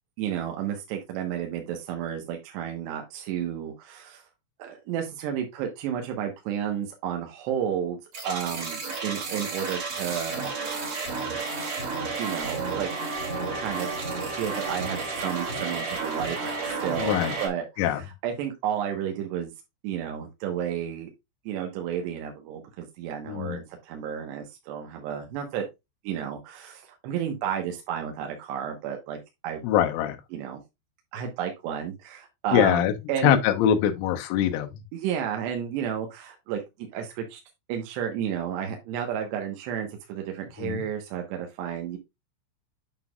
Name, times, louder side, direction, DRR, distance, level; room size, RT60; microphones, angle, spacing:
voice 1, 0.2-4.2 4.6-8.0 8.2-10.4 12.2-12.9 13.5-13.9 14.3-19.5 19.8-21.1 21.5-25.6 26.0-29.6 30.3-30.6 31.1-33.4 34.9-37.4 37.7-42.0, right 9 dB, 70° right, 3.0 m, -32 dB
sound 1, 8.1-17.5, right 4 dB, 40° right, 2.1 m, -32 dB
voice 2, 17.0-17.3 17.8-18.0 23.3-23.6 29.6-30.2 32.5-32.9 33.2-34.7 40.6-40.8, left 10 dB, 80° left, 3.5 m, -23 dB
9.1 x 5.8 x 2.3 m
omnidirectional pair, 5.7 m